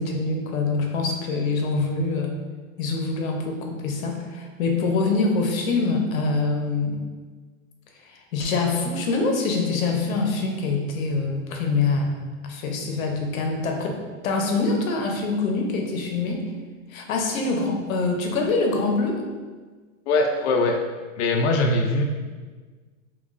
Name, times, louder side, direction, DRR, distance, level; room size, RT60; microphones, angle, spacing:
voice 1, 0.0-2.3 2.8-7.0 8.1-12.2 12.4-14.0 14.2-16.5 16.9-19.2, left 3 dB, 85° left, 2 dB, 0.8 m, -25 dB
voice 2, 20.1-20.8 21.2-22.0, left 2 dB, 60° left, 3 dB, 0.5 m, -21 dB
5.7 x 2.2 x 2.5 m, 1.4 s
supercardioid pair, 150°, 40 cm